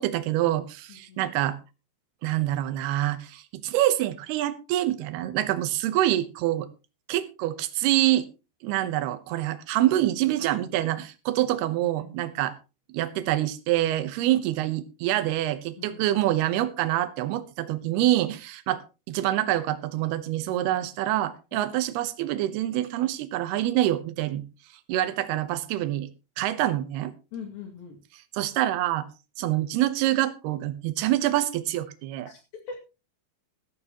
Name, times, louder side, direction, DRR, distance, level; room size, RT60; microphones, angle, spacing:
voice 1, 0.0-1.6 2.2-6.7 7.1-8.3 8.6-12.6 12.9-24.4 24.9-26.1 26.4-27.1 28.3-29.1 29.4-32.3, right 14 dB, 85° right, 12 dB, 3.0 m, -26 dB
voice 2, 0.9-1.2 9.8-9.9 15.8-16.2 21.5-21.7 27.3-28.0 32.3-32.4 32.7-32.8, left 5 dB, 70° left, 2 dB, 3.9 m, -41 dB
14.5 x 13.5 x 3.0 m, 0.29 s
omnidirectional pair, 4.5 m